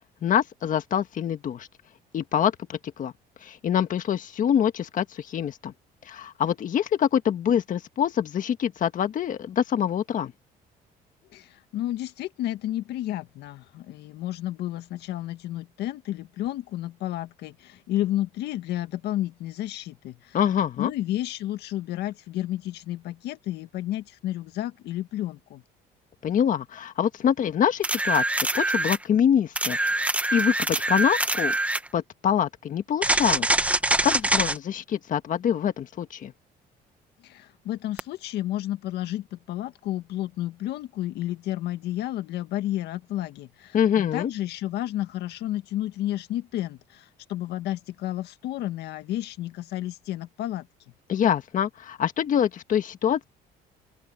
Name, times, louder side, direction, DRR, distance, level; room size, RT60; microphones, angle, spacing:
voice 1, 0.2-1.7 2.1-3.1 3.4-5.7 6.0-10.3 20.3-20.9 26.2-29.9 30.3-31.5 31.9-33.5 34.0-36.3 43.7-44.3 51.1-53.2, left 9 dB, 50° left, 1.6 m, -25 dB
voice 2, 11.3-20.4 20.8-25.6 37.2-50.7, left 14 dB, 80° left, 1.8 m, -31 dB
sound 1, 27.8-29.0 29.6-31.9 33.0-34.6 38.0-38.1, right 1 dB, 10° right, 1.3 m, -24 dB
open air
cardioid pair, 110°, 17 cm